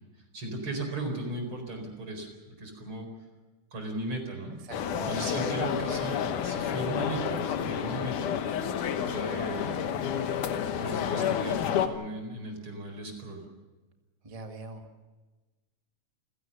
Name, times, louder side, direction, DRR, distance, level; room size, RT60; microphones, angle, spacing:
voice 1, 0.3-3.1 3.7-4.6 5.1-8.3 9.1-9.8 10.8-13.4, right 2 dB, 40° right, 4 dB, 5.2 m, -36 dB
voice 2, 4.6-5.2 14.2-15.0, right 2 dB, 20° right, 3 dB, 1.0 m, -43 dB
sound 1, 4.7-11.9, left 8 dB, 75° left, 2.8 m, -30 dB
28.5 x 16.5 x 6.8 m, 1.2 s
omnidirectional pair, 3.6 m